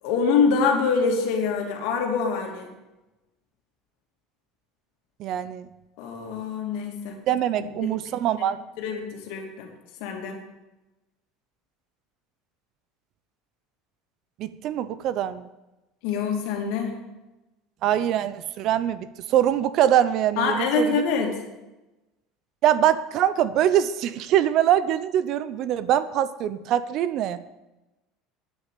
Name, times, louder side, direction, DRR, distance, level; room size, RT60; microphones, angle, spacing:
voice 1, 0.0-2.7 6.0-7.2 7.8-7.9 8.8-9.7 10.0-10.4 16.0-16.9 20.4-21.3, left 5 dB, 65° left, 2 dB, 2.6 m, -25 dB
voice 2, 5.2-5.7 7.3-8.6 14.4-15.5 17.8-21.0 22.6-27.4, right 11 dB, 45° right, 15 dB, 0.6 m, -23 dB
9.7 x 8.3 x 8.3 m, 1.0 s
cardioid pair, 170°, 0 cm